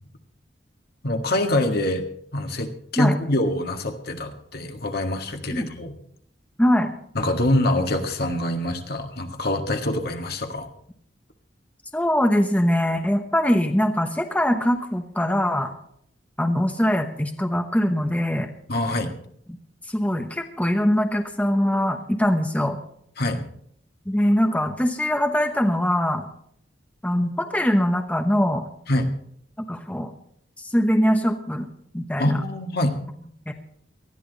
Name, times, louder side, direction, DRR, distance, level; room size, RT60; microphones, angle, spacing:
voice 1, 1.0-2.0 2.3-5.9 7.2-10.7 18.7-19.1 23.2-23.4 28.9-29.1 32.2-33.0, left 1 dB, 60° left, 4 dB, 1.8 m, -25 dB
voice 2, 6.6-6.9 11.9-15.7 16.4-18.5 19.9-22.8 24.1-26.3 27.0-28.7 29.7-30.1 30.6-31.7 31.9-32.4 33.5-33.6, equal, 10° left, 5 dB, 1.0 m, -22 dB
19.5 x 13.5 x 4.1 m, 0.67 s
head